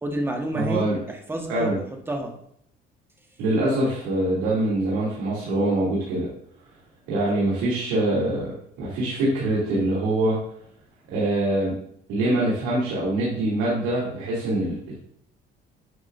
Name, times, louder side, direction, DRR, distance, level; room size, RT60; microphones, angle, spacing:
voice 1, 0.0-2.4, right 1 dB, 10° right, 2 dB, 1.4 m, -30 dB
voice 2, 0.5-1.0 1.5-1.8 3.4-6.3 7.1-10.4 11.1-11.7 12.1-15.0, right 1 dB, 90° right, -7 dB, 2.6 m, -24 dB
9.5 x 6.0 x 2.6 m, 0.69 s
cardioid pair, 115°, 20 cm